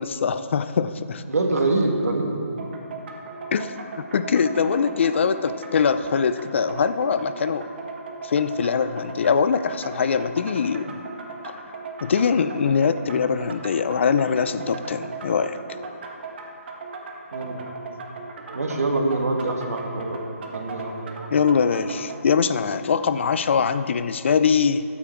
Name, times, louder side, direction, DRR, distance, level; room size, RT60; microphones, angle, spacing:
voice 1, 0.0-1.2 3.5-7.7 8.2-11.0 11.4-11.5 12.0-15.6 21.3-24.8, left 6 dB, 50° left, 13 dB, 0.4 m, -22 dB
voice 2, 1.3-2.3 17.3-17.6 18.5-20.2 20.5-21.1, right 2 dB, 80° right, 2 dB, 1.9 m, -24 dB
sound 1, 2.6-22.2, right 3 dB, 45° right, 1.3 m, -37 dB
12.5 x 8.3 x 4.5 m, 2.6 s
hypercardioid pair, 160°, 8 cm